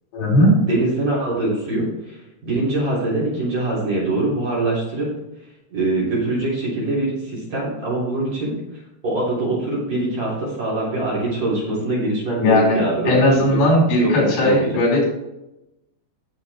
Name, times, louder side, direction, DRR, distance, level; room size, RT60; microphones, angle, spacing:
voice 1, 0.1-0.6 12.4-15.0, left 1 dB, 80° left, -2 dB, 7.3 m, -17 dB
voice 2, 0.7-5.1 5.7-8.5 9.0-13.6 14.0-14.7, right 2 dB, 40° right, -5 dB, 4.3 m, -23 dB
17.0 x 7.1 x 3.6 m, 0.91 s
omnidirectional pair, 5.5 m